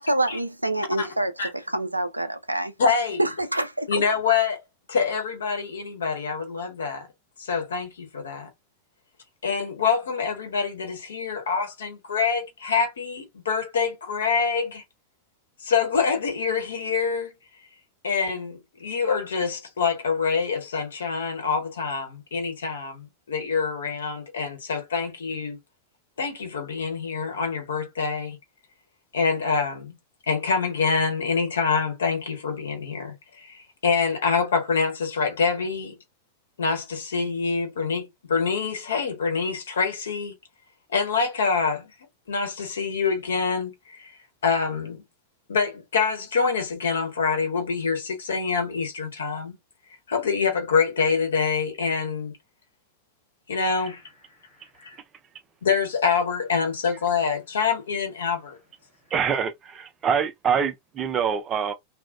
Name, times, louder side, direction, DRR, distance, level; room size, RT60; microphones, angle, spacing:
voice 1, 0.0-2.7 3.2-3.9, right 1 dB, 85° right, 0.3 m, -26 dB
voice 2, 2.8-3.2 3.9-4.6 4.9-7.1 7.4-8.5 9.4-14.8 15.6-17.3 18.0-25.6 26.2-28.4 29.1-30.0 30.3-36.0 36.6-40.4 40.9-41.9 42.3-44.1 44.4-45.0 45.5-49.6 50.1-52.3 53.5-54.0 54.8-55.0 55.6-58.6, left 5 dB, 65° left, 0.8 m, -26 dB
voice 3, 59.1-61.7, right 7 dB, 25° right, 0.6 m, -25 dB
2.4 x 2.0 x 2.5 m
figure-of-eight pair, 90°, 0 cm